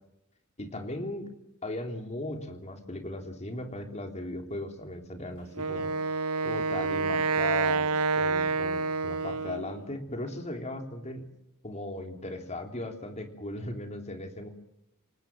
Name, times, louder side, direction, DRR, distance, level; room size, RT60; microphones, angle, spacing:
voice 1, 0.6-1.3 1.6-5.9 6.4-7.9 8.1-11.3 11.6-14.5, left 1 dB, 30° left, 5 dB, 3.3 m, -37 dB
Wind instrument woodwind instrument, 5.5-9.8, right 4 dB, 80° right, 0.9 m, -28 dB
28.0 x 19.0 x 7.5 m, 0.85 s
head